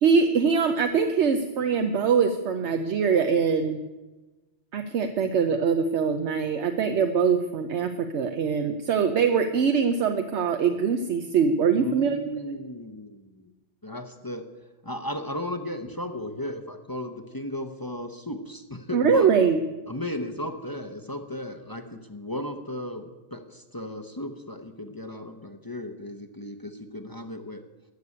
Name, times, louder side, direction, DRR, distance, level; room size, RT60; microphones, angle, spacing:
voice 1, 0.0-3.8 4.7-12.2 18.9-19.6, right 6 dB, 80° right, 7 dB, 1.0 m, -23 dB
voice 2, 11.7-13.2 13.8-14.4 14.8-19.3 19.9-23.0 23.3-27.6, left 1 dB, 20° left, 7 dB, 0.7 m, -35 dB
13.0 x 6.8 x 9.5 m, 1.1 s
omnidirectional pair, 1.2 m